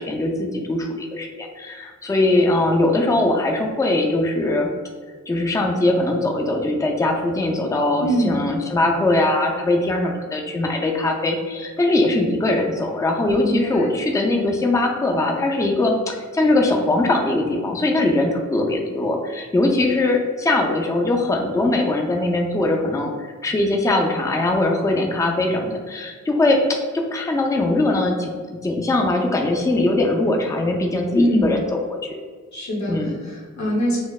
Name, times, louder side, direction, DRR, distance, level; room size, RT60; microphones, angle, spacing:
voice 1, 0.0-4.7 5.3-23.1 23.4-28.3 28.6-32.2 32.9-33.2, left 2 dB, 10° left, 2 dB, 0.3 m, -21 dB
voice 2, 8.0-8.4 13.3-13.9 31.1-31.6 32.5-33.0 33.2-34.0, equal, 70° left, -3 dB, 0.9 m, -22 dB
4.1 x 2.0 x 2.3 m, 1.5 s
wide cardioid pair, 110°, 29 cm